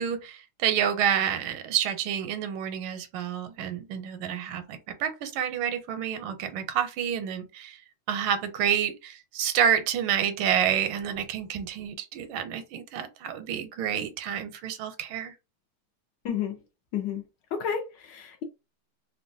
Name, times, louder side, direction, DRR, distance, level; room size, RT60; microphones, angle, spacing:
voice 1, 0.0-7.8 8.1-15.3, right 9 dB, 85° right, 1.4 m, -28 dB
voice 2, 16.2-16.6 16.9-17.2 17.5-18.4, left 8 dB, 70° left, 1.1 m, -31 dB
3.4 x 2.1 x 2.6 m
omnidirectional pair, 2.2 m